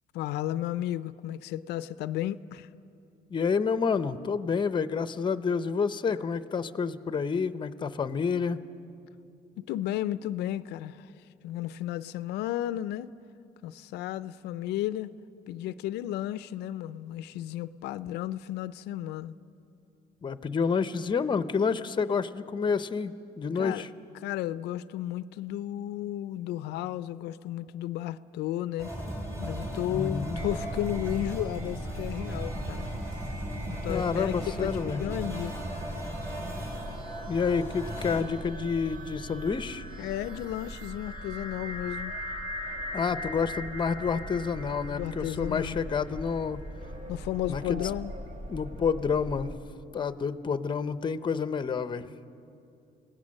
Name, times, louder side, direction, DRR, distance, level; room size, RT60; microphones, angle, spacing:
voice 1, 0.1-2.7 9.6-11.1 11.4-13.1 13.6-15.1 15.5-19.4 23.5-23.8 24.2-28.9 29.4-32.9 33.6-35.6 40.0-42.2 44.9-45.9 47.1-48.1, left 13 dB, 80° left, 0.5 m, -33 dB
voice 2, 3.3-8.6 20.2-23.9 29.9-30.4 33.9-35.0 37.3-39.8 42.9-46.6 47.5-47.9 48.5-49.6 49.9-52.1, left 5 dB, 30° left, 0.7 m, -29 dB
sound 1, 28.8-38.2, right 1 dB, 15° right, 4.6 m, -37 dB
sound 2, 30.3-49.6, equal, 50° right, 2.2 m, -40 dB
27.5 x 17.5 x 6.5 m
cardioid pair, 110°, 17 cm